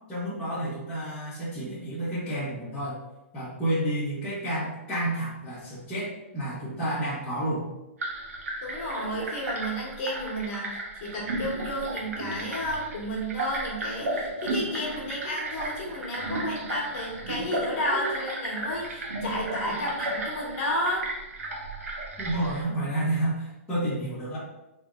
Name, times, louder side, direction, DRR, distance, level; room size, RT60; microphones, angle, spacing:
voice 1, 0.1-3.0 3.3-7.7 22.2-24.4, right 1 dB, 10° left, -13 dB, 0.8 m, -30 dB
sound 1, 8.0-22.6, right 2 dB, 80° right, 0.8 m, -34 dB
voice 2, 8.6-21.1, equal, 35° left, -3 dB, 1.1 m, -32 dB
3.4 x 2.1 x 3.6 m, 0.95 s
hypercardioid pair, 165°, 8 cm